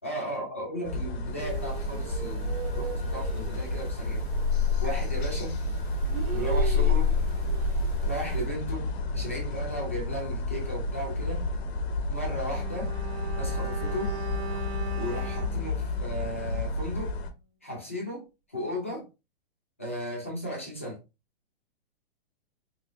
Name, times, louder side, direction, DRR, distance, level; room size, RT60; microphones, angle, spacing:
voice 1, 0.0-4.2 4.8-5.6 6.3-7.1 8.0-11.4 12.1-12.9 13.3-14.2 15.0-17.2 17.6-18.2 18.5-19.0 19.8-21.0, equal, 15° left, 0.3 m, -35 dB
sound 1, 0.8-17.3, left 2 dB, 85° left, 0.7 m, -32 dB
sound 2, 1.4-8.5, left 3 dB, 40° right, 0.8 m, -29 dB
Bowed string instrument, 12.4-16.9 17.2-17.3, right 5 dB, 80° right, 0.8 m, -40 dB
4.2 x 2.5 x 2.4 m
hypercardioid pair, 180°, 31 cm